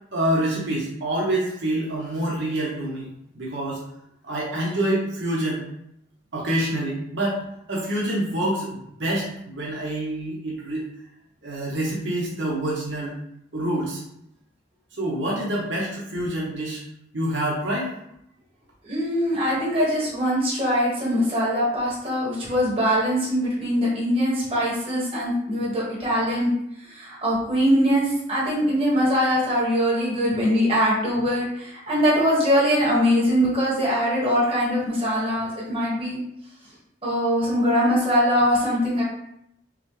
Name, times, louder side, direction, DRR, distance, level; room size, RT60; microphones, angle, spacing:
voice 1, 0.1-3.1 3.3-3.8 4.2-5.6 6.3-10.8 11.4-13.1 13.5-14.0 15.0-16.8 17.1-17.9, right 1 dB, 75° right, -4 dB, 1.2 m, -26 dB
voice 2, 18.8-26.5 26.8-36.2 37.0-39.0, equal, 30° right, -7 dB, 1.5 m, -22 dB
6.2 x 2.3 x 3.2 m, 0.76 s
head